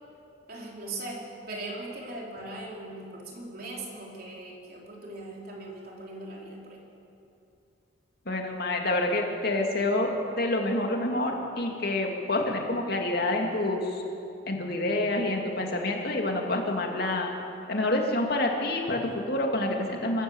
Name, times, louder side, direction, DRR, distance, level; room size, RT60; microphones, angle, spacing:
voice 1, 0.5-6.8, right 2 dB, 55° right, -2 dB, 4.0 m, -39 dB
voice 2, 8.3-10.1 10.4-14.0 14.5-17.3 17.7-20.2, left 2 dB, 55° left, 1 dB, 2.6 m, -27 dB
24.5 x 14.5 x 7.3 m, 2.7 s
head